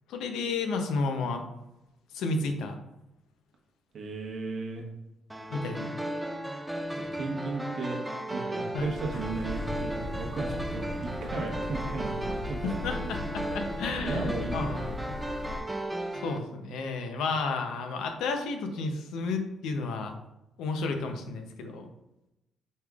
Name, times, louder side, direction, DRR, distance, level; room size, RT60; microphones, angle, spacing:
voice 1, 0.1-1.4 2.1-2.7 5.5-6.0 8.7-8.9 12.6-15.0 16.2-20.1 20.6-21.9, left 3 dB, 85° left, 5 dB, 0.6 m, -32 dB
voice 2, 3.9-4.9 7.1-8.0 8.3-13.4 14.0-14.8, right 3 dB, 60° right, 0 dB, 1.0 m, -36 dB
sound 1, 5.3-16.4, right 1 dB, 10° right, 0.4 m, -35 dB
sound 2, 8.7-15.6, left 2 dB, 50° left, 0.9 m, -38 dB
5.2 x 3.3 x 2.4 m, 0.90 s
cardioid pair, 90°, 0 cm